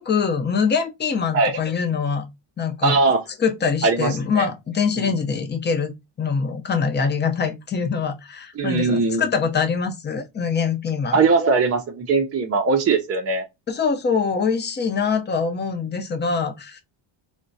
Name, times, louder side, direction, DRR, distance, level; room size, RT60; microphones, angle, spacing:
voice 1, 0.0-2.3 2.6-3.0 3.4-5.9 6.2-11.2 13.7-16.8, left 5 dB, 20° left, 0.5 m, -23 dB
voice 2, 2.8-3.2 3.8-4.5 5.0-5.2 8.6-9.3 11.1-13.4, right 4 dB, 30° right, 0.4 m, -20 dB
3.6 x 2.1 x 2.5 m
cardioid pair, 115°, 50 cm